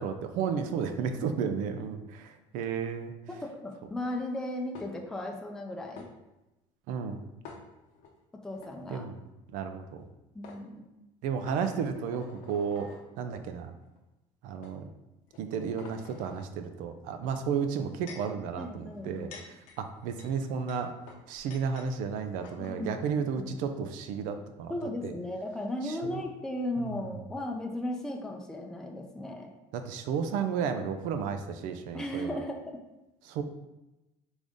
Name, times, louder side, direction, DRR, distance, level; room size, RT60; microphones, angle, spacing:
voice 1, 0.0-3.1 6.9-7.2 8.9-9.2 9.5-10.0 11.2-12.9 13.2-13.7 14.4-14.9 15.4-20.9 21.3-24.7 25.0-25.1 25.8-26.2 26.8-27.0 29.7-32.4 33.2-33.4, right 6 dB, 75° right, 7 dB, 0.5 m, -33 dB
voice 2, 3.3-6.1 8.4-9.1 10.3-10.8 18.6-19.4 22.6-23.0 23.3-23.6 24.7-29.5 31.9-32.8, left 1 dB, 5° left, 1 dB, 0.4 m, -36 dB
sound 1, 4.8-5.2 6.0-6.1 7.4-8.1 8.5-8.7 10.0-10.1 10.4-10.6 11.5-13.1 13.8-14.0 14.6-14.8 15.3-16.5 17.6-18.4 19.0-21.9 22.2-22.3 22.4-22.8, left 5 dB, 70° left, 0.8 m, -49 dB
5.0 x 2.6 x 3.6 m, 0.97 s
cardioid pair, 130°, 13 cm